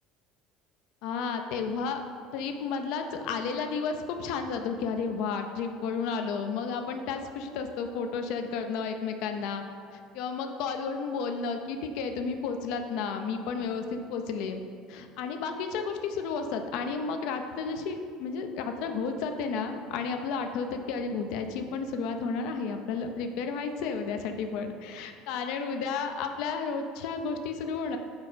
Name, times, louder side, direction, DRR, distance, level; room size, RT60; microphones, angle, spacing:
voice 1, 1.0-2.0 2.3-9.6 9.9-14.6 14.9-28.0, left 5 dB, 70° left, 6 dB, 0.5 m, -32 dB
5.2 x 4.7 x 4.1 m, 2.3 s
cardioid pair, 135°, 0 cm